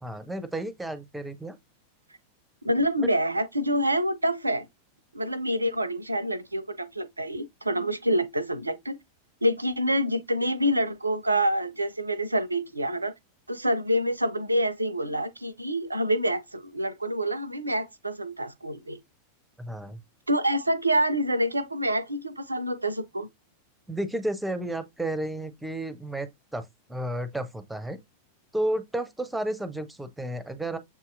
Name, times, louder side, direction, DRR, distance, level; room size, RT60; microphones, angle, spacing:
voice 1, 0.0-1.6 3.0-3.1 19.6-20.0 23.9-28.0 28.5-30.8, right 1 dB, 5° right, 0.8 m, -32 dB
voice 2, 2.6-4.7 5.1-9.0 9.4-13.1 13.5-19.0 20.3-23.3, equal, 80° right, 0.5 m, -27 dB
7.4 x 2.8 x 2.5 m
figure-of-eight pair, 90°, 0 cm